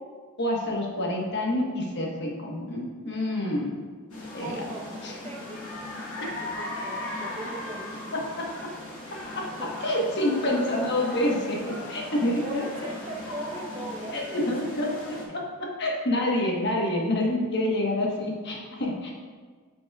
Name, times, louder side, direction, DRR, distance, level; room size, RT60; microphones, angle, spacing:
voice 1, 0.4-3.8 4.3-4.5 5.0-5.1 8.1-8.7 9.1-9.5 9.8-12.6 14.1-19.1, left 1 dB, 50° left, -1 dB, 1.2 m, -28 dB
sound 1, 4.1-15.2, left 2 dB, 75° left, 2.0 m, -38 dB
voice 2, 4.4-5.9 6.2-8.3 9.6-9.9 10.5-11.3 12.4-14.7, right 2 dB, 25° right, -1 dB, 0.7 m, -40 dB
9.3 x 6.1 x 2.3 m, 1.6 s
head